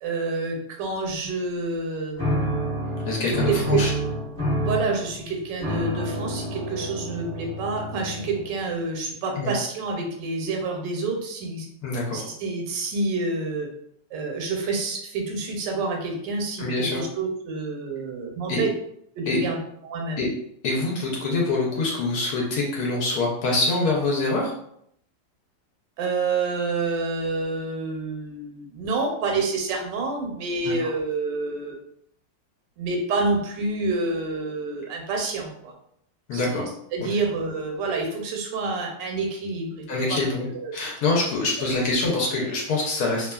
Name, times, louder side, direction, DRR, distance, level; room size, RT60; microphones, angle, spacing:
voice 1, 0.0-2.6 3.3-3.8 4.6-11.7 12.1-13.7 14.1-18.7 19.1-19.6 19.8-20.3 26.0-31.8 32.8-35.7 36.3-39.8 40.1-40.2 40.5-40.7 41.6-41.7, right 3 dB, 80° right, 1 dB, 1.2 m, -28 dB
sound 1, 2.2-8.7, equal, 5° left, 0.4 m, -28 dB
voice 2, 3.0-3.9 9.4-9.5 11.8-12.2 16.6-17.0 18.5-18.6 19.3-19.4 20.2-20.3 20.6-24.5 30.6-30.7 36.3-36.6 39.9-43.3, left 3 dB, 70° left, -2 dB, 1.0 m, -25 dB
2.8 x 2.3 x 2.2 m, 0.71 s
omnidirectional pair, 1.9 m